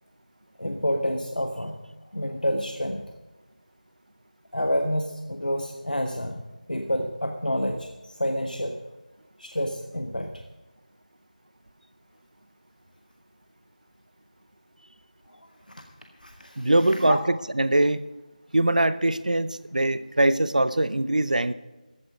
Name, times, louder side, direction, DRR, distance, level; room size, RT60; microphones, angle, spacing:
voice 1, 0.6-1.8 2.1-3.0 4.5-6.4 6.7-8.8 9.4-10.4 15.3-15.5 16.2-16.7 17.0-17.2, equal, 80° left, 4 dB, 1.4 m, -28 dB
voice 2, 16.6-18.0 18.5-21.5, right 1 dB, 65° right, 15 dB, 0.7 m, -22 dB
15.0 x 8.8 x 5.2 m, 1.1 s
figure-of-eight pair, 170°, 5 cm